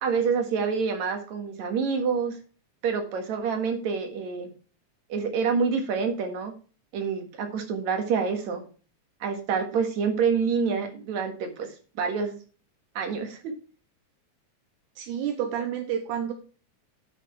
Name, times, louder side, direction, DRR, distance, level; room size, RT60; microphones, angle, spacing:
voice 1, 0.0-2.4 2.8-4.5 5.1-6.5 6.9-8.6 9.2-11.7 12.0-12.4 12.9-13.5, right 5 dB, 70° right, 5 dB, 2.9 m, -27 dB
voice 2, 15.0-16.3, right 9 dB, 85° right, 6 dB, 2.3 m, -29 dB
10.0 x 5.9 x 4.5 m, 0.38 s
omnidirectional pair, 3.5 m